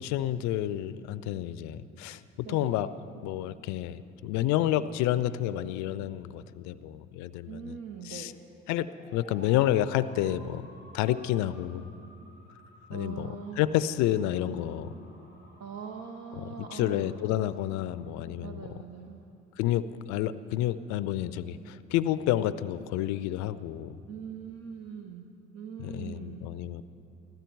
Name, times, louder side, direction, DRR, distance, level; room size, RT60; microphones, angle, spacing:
voice 1, 0.0-2.9 3.2-7.7 8.0-8.3 8.7-10.7 10.9-11.9 12.9-13.3 13.6-14.9 16.4-18.7 19.6-24.0 25.8-26.8, left 13 dB, 75° left, 15 dB, 0.5 m, -29 dB
voice 2, 2.4-2.8 7.5-8.3 12.9-13.6 15.6-17.2 18.4-19.3 24.1-25.3 25.5-26.5, right 6 dB, 60° right, 3 dB, 1.0 m, -42 dB
sound 1, 8.8-18.1, equal, 80° right, 4.2 m, -56 dB
15.5 x 13.0 x 4.5 m, 2.5 s
hypercardioid pair, 60°, 29 cm